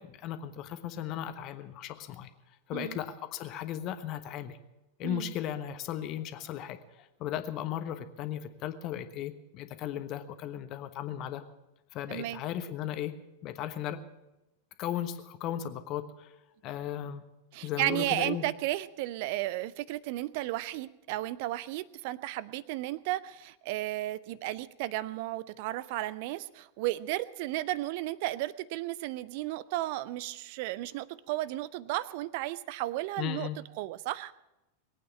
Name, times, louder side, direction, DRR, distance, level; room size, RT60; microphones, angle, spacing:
voice 1, 0.0-2.3 2.7-4.6 5.0-11.4 11.9-13.1 13.4-14.0 14.8-16.3 16.6-17.2 17.6-18.4 33.2-33.6, left 11 dB, 40° left, 9 dB, 1.2 m, -36 dB
voice 2, 5.0-5.3 12.1-12.4 17.5-33.5 33.8-34.3, right 16 dB, 50° right, 18 dB, 0.6 m, -34 dB
21.5 x 8.9 x 7.2 m, 0.96 s
figure-of-eight pair, 90°, 0 cm